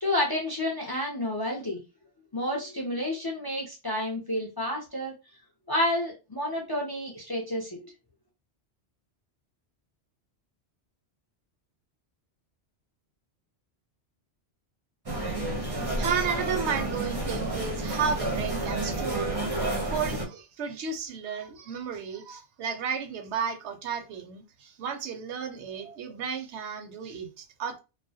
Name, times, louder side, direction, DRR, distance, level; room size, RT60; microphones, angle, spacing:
voice 1, 0.0-1.8 2.3-5.1 5.7-7.9, left 1 dB, 35° left, 0.4 m, -30 dB
sound 1, 15.1-20.3, right 1 dB, 25° right, 0.5 m, -30 dB
voice 2, 16.0-19.4 19.9-27.8, right 6 dB, 85° right, 0.9 m, -33 dB
2.3 x 2.0 x 2.6 m
omnidirectional pair, 1.1 m